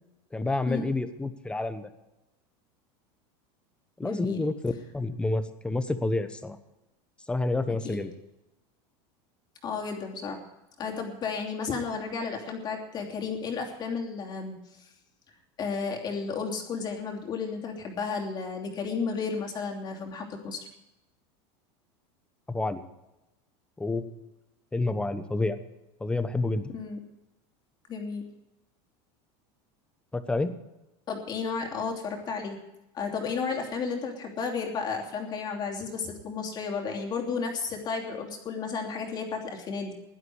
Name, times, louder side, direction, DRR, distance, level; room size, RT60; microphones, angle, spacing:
voice 1, 0.3-1.9 4.0-6.6 7.3-8.1 22.5-22.8 23.8-24.3 24.7-25.6 26.0-26.7 30.1-30.6, left 2 dB, 5° left, 10 dB, 1.0 m, -29 dB
voice 2, 4.0-4.4 7.8-8.0 9.6-10.4 10.8-14.9 15.6-20.7 26.7-27.0 27.9-28.2 31.1-32.6 32.9-39.9, left 5 dB, 30° left, 1 dB, 3.0 m, -33 dB
16.5 x 11.5 x 4.8 m, 0.96 s
supercardioid pair, 145°, 14 cm